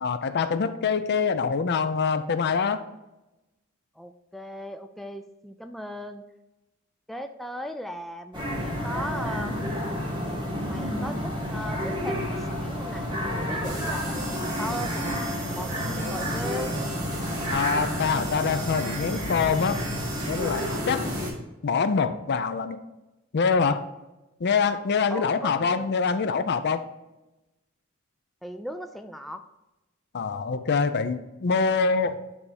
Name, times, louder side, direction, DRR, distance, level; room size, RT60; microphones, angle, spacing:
voice 1, 0.0-2.8 17.5-19.8 20.3-21.1 21.6-22.8 23.3-23.9 24.4-26.8 30.1-32.2, left 5 dB, 55° left, 11 dB, 0.5 m, -25 dB
voice 2, 4.0-6.2 7.1-9.7 10.7-13.1 13.5-14.1 14.6-15.7 16.1-16.7 25.1-25.9 28.4-29.5, equal, ahead, 6 dB, 0.3 m, -37 dB
sound 1, 8.3-21.3, equal, 25° right, 1.6 m, -30 dB
sound 2, 13.6-21.3, right 3 dB, 40° right, 2.1 m, -39 dB
9.7 x 3.5 x 4.2 m, 1.0 s
head